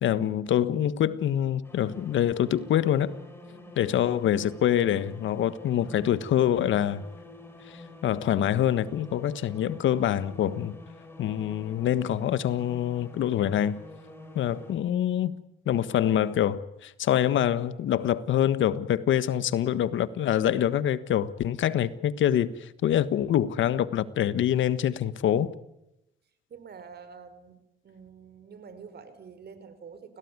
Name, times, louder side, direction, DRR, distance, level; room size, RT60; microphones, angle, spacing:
voice 1, 0.0-3.1 3.8-7.0 8.0-10.7 11.2-13.8 14.3-15.4 15.6-25.5, left 10 dB, 75° left, 1.5 m, -25 dB
sound 1, 1.6-14.7, left 2 dB, 10° left, 7.1 m, -48 dB
voice 2, 3.4-3.8 26.5-27.6 27.8-30.2, right 6 dB, 55° right, 5.0 m, -47 dB
29.5 x 18.0 x 9.7 m
cardioid pair, 90°, 20 cm